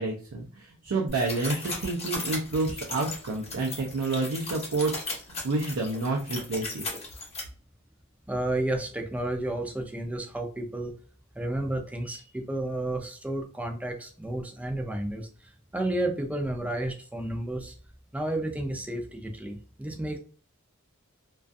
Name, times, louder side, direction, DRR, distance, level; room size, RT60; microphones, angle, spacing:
voice 1, 0.0-4.9 5.3-6.8, right 3 dB, 85° right, 1 dB, 0.5 m, -29 dB
sound 1, 1.1-7.4, left 2 dB, 30° left, 0.8 m, -37 dB
voice 2, 8.3-10.9 11.4-17.7 18.1-20.2, right 1 dB, 5° right, 3 dB, 0.4 m, -32 dB
2.4 x 2.3 x 2.5 m, 0.40 s
head